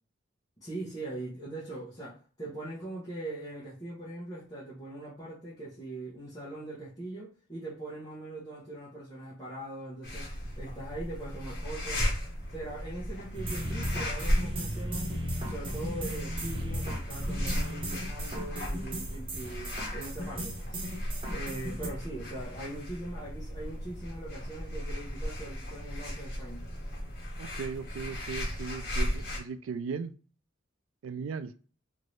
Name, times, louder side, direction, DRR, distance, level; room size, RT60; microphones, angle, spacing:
voice 1, 0.6-12.2 12.5-15.1 15.4-20.8 21.3-26.7, right 2 dB, 20° left, 0.9 m, -41 dB
sound 1, 10.0-29.4, equal, 50° left, 1.1 m, -36 dB
sound 2, 13.3-21.9, equal, 25° right, 0.7 m, -36 dB
voice 2, 27.4-30.1 31.0-31.5, right 5 dB, 85° right, 0.3 m, -37 dB
2.8 x 2.6 x 3.1 m
head